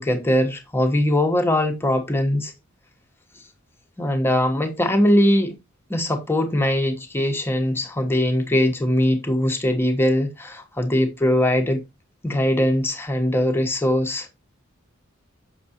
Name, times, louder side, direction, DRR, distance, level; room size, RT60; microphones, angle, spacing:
voice 1, 0.0-2.5 4.0-5.6 5.9-11.8 12.2-14.4, left 1 dB, 10° left, 1.2 m, -21 dB
6.9 x 6.0 x 2.7 m
head